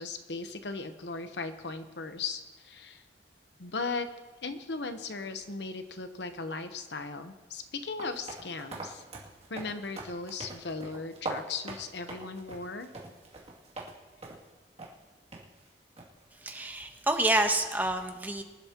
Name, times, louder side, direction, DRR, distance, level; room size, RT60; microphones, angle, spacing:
voice 1, 0.0-3.0 3.6-4.1 4.4-9.0 9.5-12.9, left 4 dB, 70° left, 8 dB, 1.0 m, -37 dB
sound 1, 8.0-14.0 14.2-14.5 14.8-14.9 15.3-15.4 16.0-16.2, right 2 dB, 40° right, 2.6 m, -42 dB
voice 2, 16.4-18.4, right 1 dB, 10° right, 4 dB, 1.0 m, -28 dB
24.0 x 12.0 x 3.0 m, 1.3 s
head